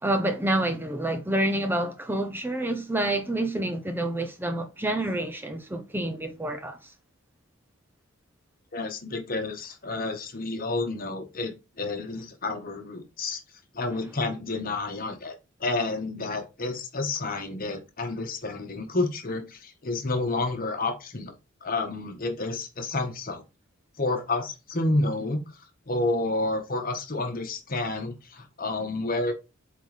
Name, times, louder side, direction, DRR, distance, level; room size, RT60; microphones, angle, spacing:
voice 1, 0.0-6.8, right 1 dB, 10° right, 0.6 m, -28 dB
voice 2, 8.7-13.4 13.7-21.3 21.6-23.4 24.0-25.4 25.9-29.3, left 2 dB, 45° left, 1.4 m, -30 dB
7.7 x 3.8 x 3.3 m
head